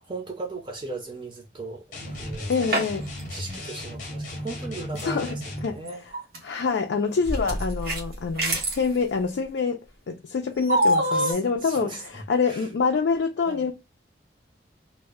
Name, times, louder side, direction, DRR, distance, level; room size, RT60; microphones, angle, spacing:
voice 1, 0.1-2.7 3.3-6.0 11.1-12.7 13.5-13.7, right 3 dB, 25° right, 0.6 m, -37 dB
sound 1, 1.9-5.8, left 1 dB, 45° left, 0.7 m, -35 dB
sound 2, 2.2-3.2 3.5-3.6 5.0-5.1 5.9-6.4 7.2-8.9 10.7-11.3, right 1 dB, 55° right, 0.9 m, -25 dB
voice 2, 2.5-3.1 5.0-5.4 5.6-5.8 6.4-9.8 10.1-11.9 12.3-13.7, left 5 dB, 80° left, 0.4 m, -26 dB
2.1 x 2.1 x 3.5 m
head